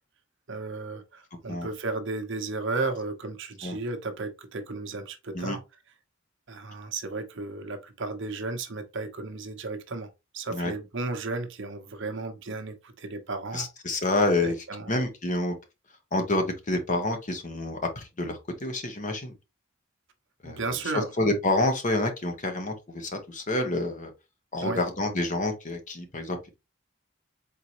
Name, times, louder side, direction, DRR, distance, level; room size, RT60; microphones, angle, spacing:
voice 1, 0.5-5.6 6.5-10.1 10.3-13.7 14.4-14.9 20.4-21.1 24.6-24.8, right 3 dB, 60° right, 0.8 m, -34 dB
voice 2, 13.5-14.6 14.9-15.6 16.1-19.3 20.4-24.1 24.5-26.5, left 2 dB, 40° left, 1.0 m, -28 dB
4.2 x 3.8 x 2.9 m
head